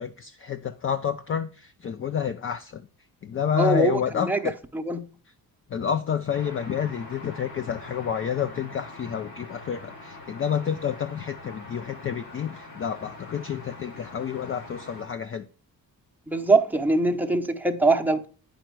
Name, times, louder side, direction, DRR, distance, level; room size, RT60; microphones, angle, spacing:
voice 1, 0.0-2.8 3.2-4.5 5.7-15.5, left 8 dB, 35° left, 0.4 m, -29 dB
voice 2, 3.5-5.1 16.3-18.3, right 2 dB, 5° right, 0.7 m, -23 dB
sound 1, 6.3-15.0, left 2 dB, 70° left, 3.1 m, -44 dB
8.9 x 5.2 x 4.6 m
cardioid pair, 105°, 37 cm